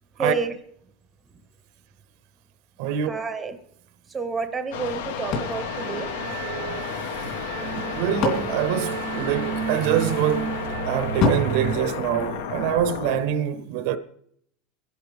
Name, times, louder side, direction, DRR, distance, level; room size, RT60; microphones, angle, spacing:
voice 1, 0.2-0.5 3.1-3.6 4.1-6.1, right 4 dB, 10° right, 0.7 m, -29 dB
voice 2, 2.8-3.1 7.2-7.3 7.7-10.6 10.8-14.0, right 10 dB, 50° right, 0.6 m, -25 dB
sound 1, 4.7-13.2, left 8 dB, 80° left, 1.1 m, -32 dB
sound 2, 5.2-11.8, right 9 dB, 80° right, 0.8 m, -33 dB
sound 3, 5.3-6.9 7.7-9.7 11.2-12.8, left 3 dB, 40° left, 3.0 m, -29 dB
23.0 x 11.0 x 3.4 m
supercardioid pair, 180°, 0 cm